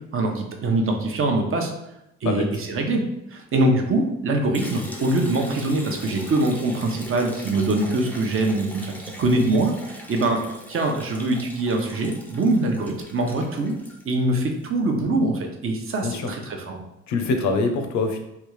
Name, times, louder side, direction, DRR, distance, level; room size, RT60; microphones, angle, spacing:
voice 1, 0.1-1.7 2.2-3.0 3.3-10.4 10.7-13.7 14.0-16.8, right 2 dB, 45° right, 2 dB, 0.7 m, -23 dB
Liquid, 4.5-14.6, left 1 dB, 5° left, 0.5 m, -41 dB
voice 2, 17.1-18.2, left 3 dB, 70° left, 5 dB, 0.6 m, -24 dB
3.3 x 2.4 x 3.1 m, 0.84 s
cardioid pair, 90°, 30 cm